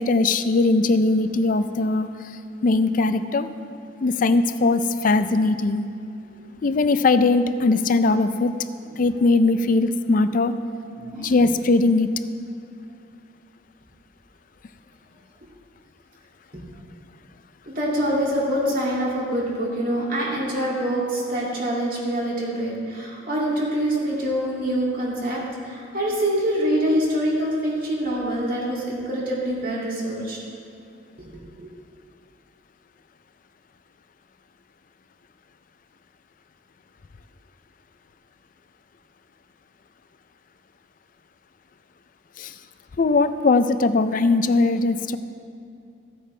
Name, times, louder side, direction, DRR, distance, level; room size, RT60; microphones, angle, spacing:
voice 1, 0.0-2.1 2.6-3.5 4.0-5.8 6.6-8.5 9.0-10.5 11.2-12.1 42.4-42.5 43.0-45.2, left 3 dB, 45° left, 11 dB, 0.4 m, -20 dB
voice 2, 6.3-6.7 9.2-9.3 11.0-11.5 16.5-16.6 17.7-30.4 31.2-31.3 31.6-31.7, right 1 dB, 50° right, -5 dB, 2.4 m, -25 dB
14.5 x 8.7 x 3.3 m, 2.5 s
head